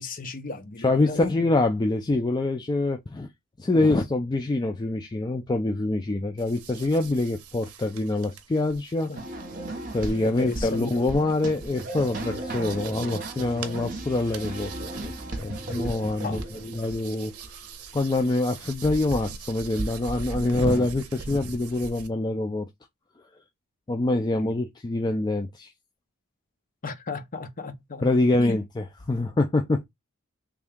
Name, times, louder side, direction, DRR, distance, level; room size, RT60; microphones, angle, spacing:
voice 1, 0.0-1.3 9.1-9.2 10.2-10.9 16.2-16.4 24.4-24.5 26.8-28.0 28.4-28.6, left 3 dB, 40° left, 0.8 m, -34 dB
voice 2, 0.8-3.3 3.6-9.1 9.9-14.7 15.0-15.1 15.4-17.7 17.9-22.7 23.9-25.7 28.0-29.8, left 2 dB, 20° left, 0.4 m, -25 dB
sound 1, 6.4-22.1, right 4 dB, 70° right, 0.7 m, -41 dB
sound 2, 9.1-17.5, right 1 dB, 40° right, 1.2 m, -36 dB
3.5 x 2.7 x 3.5 m
head